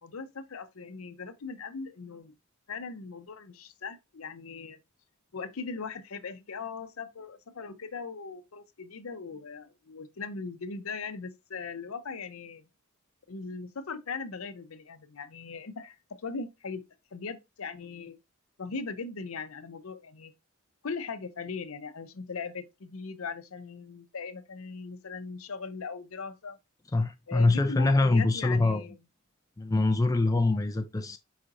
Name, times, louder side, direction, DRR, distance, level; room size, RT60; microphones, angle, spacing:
voice 1, 0.0-2.3 2.7-4.8 5.3-12.7 13.3-16.8 17.1-18.2 18.6-20.3 20.8-26.6 27.3-29.0, left 4 dB, 70° left, 0.7 m, -39 dB
voice 2, 26.9-28.8 29.6-31.2, left 2 dB, 15° left, 0.4 m, -24 dB
4.9 x 4.0 x 2.5 m
head